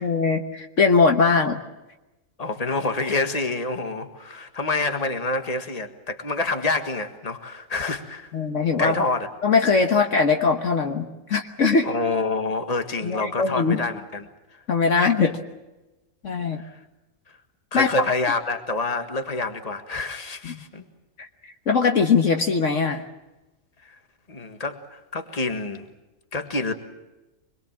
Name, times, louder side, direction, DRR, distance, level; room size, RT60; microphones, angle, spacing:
voice 1, 0.0-1.6 8.3-9.1 9.4-11.9 13.0-13.8 14.7-15.4 16.2-16.6 17.7-17.9 20.4-20.5 21.2-21.3 21.7-23.0, left 4 dB, 60° left, 4 dB, 1.5 m, -21 dB
voice 2, 2.4-8.3 8.8-9.3 11.8-14.6 15.2-15.3 16.6-16.8 17.3-17.4 17.7-20.8 23.8-24.0 24.3-25.9 26.3-26.7, left 3 dB, 25° left, 7 dB, 1.7 m, -27 dB
25.5 x 22.0 x 7.4 m, 1.0 s
omnidirectional pair, 1.5 m